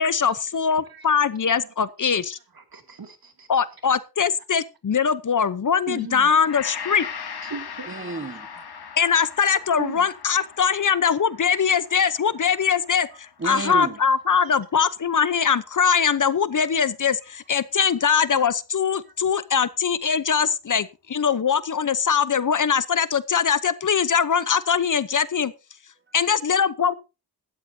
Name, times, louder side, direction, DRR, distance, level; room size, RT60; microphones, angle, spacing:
voice 1, 0.0-2.4 3.5-7.1 9.0-25.5 26.1-26.9, left 6 dB, 50° left, 0.8 m, -22 dB
voice 2, 2.5-3.6 5.9-6.3 7.4-7.9 9.8-10.1 13.7-13.9 21.8-21.9, right 5 dB, 60° right, 2.4 m, -37 dB
Gong, 6.5-14.8 15.2-15.3, left 6 dB, 70° left, 1.4 m, -40 dB
voice 3, 7.9-9.2 13.4-14.0 26.1-26.2, right 3 dB, 30° right, 1.3 m, -33 dB
16.5 x 12.5 x 2.7 m
wide cardioid pair, 85°, 39 cm